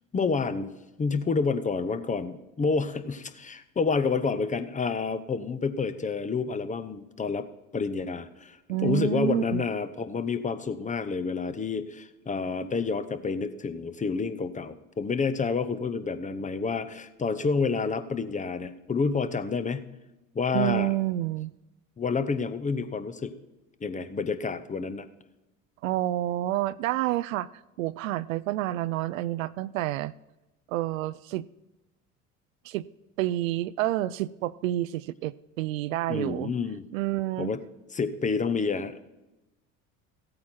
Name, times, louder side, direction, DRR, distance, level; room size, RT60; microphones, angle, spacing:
voice 1, 0.1-0.7 1.0-7.5 7.7-8.6 8.8-19.8 20.3-20.9 22.0-23.4 23.8-25.1 36.1-36.8 37.4-37.6 37.9-38.9, left 5 dB, 20° left, 12 dB, 0.8 m, -29 dB
voice 2, 8.7-9.6 20.5-21.5 25.8-27.5 27.8-30.1 30.7-31.5 32.6-32.9 33.2-36.5 36.9-37.5, right 15 dB, 70° right, 18 dB, 0.5 m, -29 dB
15.5 x 8.7 x 4.5 m, 0.99 s
figure-of-eight pair, 65°, 42 cm